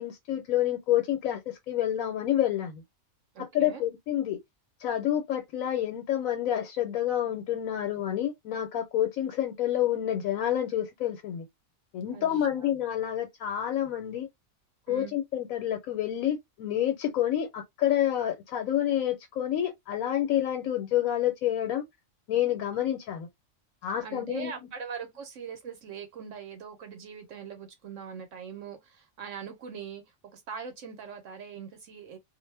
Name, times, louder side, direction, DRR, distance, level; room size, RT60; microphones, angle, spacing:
voice 1, 0.0-2.8 3.4-4.4 4.8-11.5 11.9-14.3 14.9-21.8 22.3-23.3 23.8-24.5, left 11 dB, 90° left, 1.1 m, -28 dB
voice 2, 3.3-3.8 12.1-12.7 14.9-15.1 24.0-32.2, right 6 dB, 70° right, 1.0 m, -42 dB
2.5 x 2.1 x 3.2 m
omnidirectional pair, 1.4 m